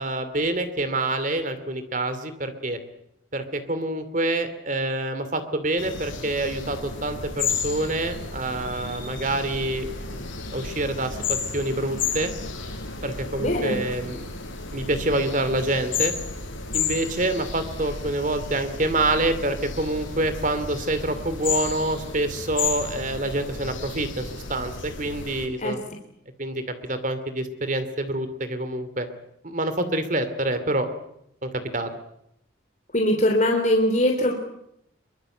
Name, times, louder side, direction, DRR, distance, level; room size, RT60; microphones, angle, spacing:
voice 1, 0.0-2.8 3.3-10.2 10.5-11.2 11.5-12.3 13.0-14.3 14.7-16.1 16.7-25.8 26.4-29.1 29.4-30.9 31.4-31.9, right 2 dB, 40° right, 10 dB, 2.7 m, -27 dB
sound 1, 5.8-25.5, left 5 dB, 80° left, 5.8 m, -32 dB
voice 2, 13.4-13.8 25.6-25.7 32.9-34.3, left 1 dB, 40° left, 2 dB, 3.0 m, -21 dB
23.5 x 23.0 x 7.9 m, 0.77 s
head